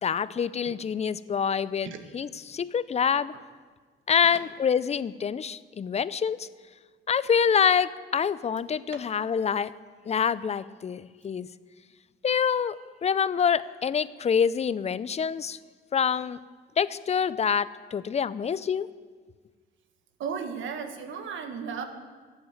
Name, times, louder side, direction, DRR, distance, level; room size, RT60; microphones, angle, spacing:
voice 1, 0.0-3.3 4.1-6.5 7.1-9.7 10.1-11.5 12.2-12.7 13.0-15.6 15.9-16.4 16.8-18.9, left 7 dB, 35° left, 17 dB, 0.5 m, -26 dB
voice 2, 20.2-21.8, right 6 dB, 75° right, 7 dB, 1.5 m, -34 dB
13.0 x 8.0 x 8.1 m, 1.5 s
cardioid pair, 90°, 20 cm